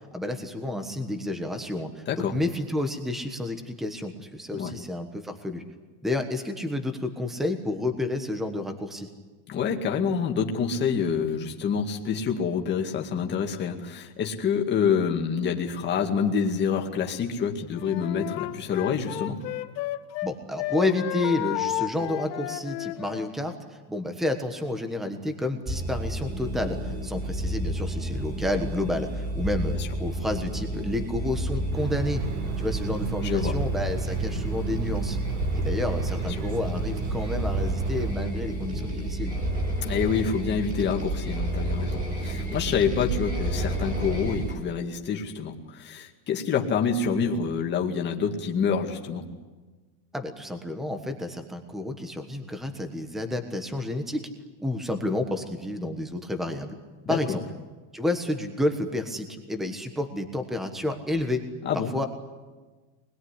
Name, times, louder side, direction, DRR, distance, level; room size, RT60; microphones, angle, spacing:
voice 1, 0.1-5.6 6.0-9.1 20.2-23.6 23.9-32.2 32.6-35.2 35.5-39.3 50.1-54.3 54.6-56.7 57.1-57.4 57.9-61.4 61.9-62.1, left 1 dB, ahead, 7 dB, 1.3 m, -30 dB
voice 2, 9.5-19.4 29.7-29.9 33.2-33.6 39.8-49.2 57.1-57.2 61.6-61.9, left 6 dB, 20° left, 2 dB, 2.2 m, -27 dB
Wind instrument woodwind instrument, 17.7-20.3 20.6-23.3, left 15 dB, 85° left, 1.9 m, -32 dB
sound 1, 25.7-44.5, right 1 dB, 15° right, 4.2 m, -30 dB
sound 2, 31.7-38.1, right 6 dB, 70° right, 1.7 m, -33 dB
25.0 x 21.0 x 9.9 m, 1.3 s
supercardioid pair, 175°, 50 cm